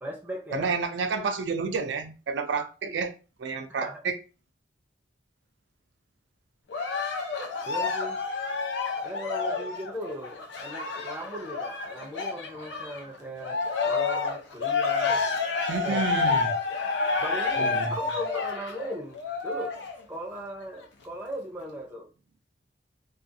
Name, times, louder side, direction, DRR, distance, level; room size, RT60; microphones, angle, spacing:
voice 1, 0.0-0.7 2.8-3.0 3.8-4.0 7.6-8.2 9.0-15.2 15.8-16.0 17.2-19.8 20.1-22.1, equal, 10° right, 0.5 m, -38 dB
voice 2, 0.5-3.1 3.4-4.2 15.7-16.6 17.6-17.9, right 5 dB, 85° right, 0.4 m, -30 dB
Cheering, 6.7-13.0 13.4-20.0 20.6-20.7, left 4 dB, 90° left, 0.6 m, -29 dB
2.4 x 2.4 x 2.6 m
head